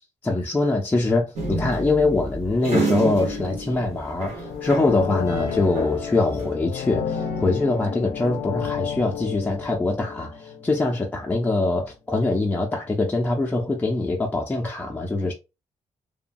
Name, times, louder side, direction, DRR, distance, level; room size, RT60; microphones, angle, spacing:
voice 1, 0.2-15.3, left 2 dB, 15° left, 0.5 m, -23 dB
sound 1, 1.4-5.1 5.4-6.5, right 2 dB, 70° right, 1.3 m, -29 dB
sound 2, 4.4-11.2 11.5-11.6, left 10 dB, 85° left, 0.4 m, -32 dB
sound 3, 5.3-11.3, left 1 dB, 30° right, 0.9 m, -38 dB
3.0 x 2.1 x 2.5 m
cardioid pair, 130°, 12 cm